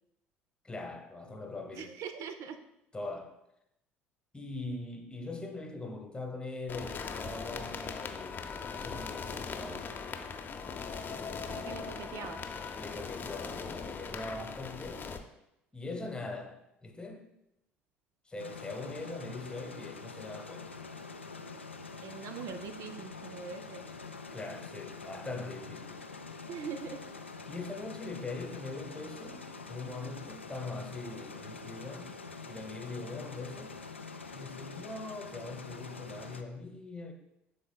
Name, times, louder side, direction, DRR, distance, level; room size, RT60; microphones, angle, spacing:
voice 1, 0.6-1.9 2.9-3.4 4.3-9.9 12.8-15.1 15.7-17.3 18.3-20.8 24.3-26.0 27.5-32.1 32.5-33.8 34.3-37.1, left 3 dB, 15° left, 1.0 m, -42 dB
voice 2, 1.7-2.6 11.5-12.5 22.0-23.8 26.5-27.0, right 6 dB, 50° right, 0.4 m, -42 dB
sound 1, 6.7-15.2, left 5 dB, 30° left, 0.6 m, -40 dB
sound 2, 18.4-36.4, left 4 dB, 90° left, 0.3 m, -45 dB
11.0 x 3.9 x 2.2 m
figure-of-eight pair, 55°, 6 cm